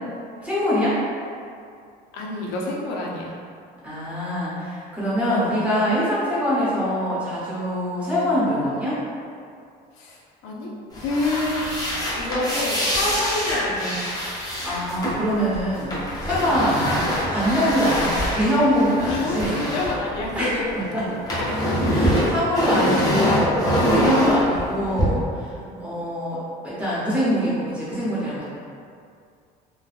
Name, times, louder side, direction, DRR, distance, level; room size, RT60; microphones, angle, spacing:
voice 1, 0.4-1.0 3.8-9.0 14.6-16.8 17.3-19.6 20.3-20.5 20.9-21.0 21.9-28.4, equal, 10° right, -10 dB, 0.8 m, -23 dB
voice 2, 2.1-3.4 9.9-11.7 12.1-14.0 19.0-21.9 25.5-25.8, left 2 dB, 85° left, -3 dB, 0.5 m, -28 dB
sound 1, 10.9-20.7 21.0-25.0, equal, 20° left, 0.7 m, -24 dB
3.3 x 2.2 x 2.3 m, 2.3 s
cardioid pair, 150°, 17 cm